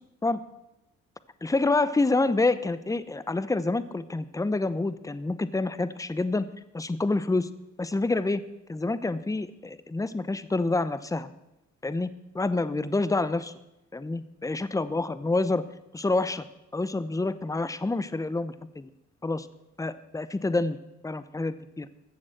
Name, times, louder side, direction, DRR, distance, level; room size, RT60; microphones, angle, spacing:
voice 1, 1.4-6.5 6.7-7.5 7.8-8.4 8.7-11.3 11.8-13.5 13.9-15.6 15.9-16.4 16.7-18.9 19.2-19.5 19.8-20.8 21.0-21.9, left 2 dB, 10° left, 14 dB, 0.8 m, -27 dB
14.5 x 7.1 x 7.7 m, 0.92 s
cardioid pair, 90°, 30 cm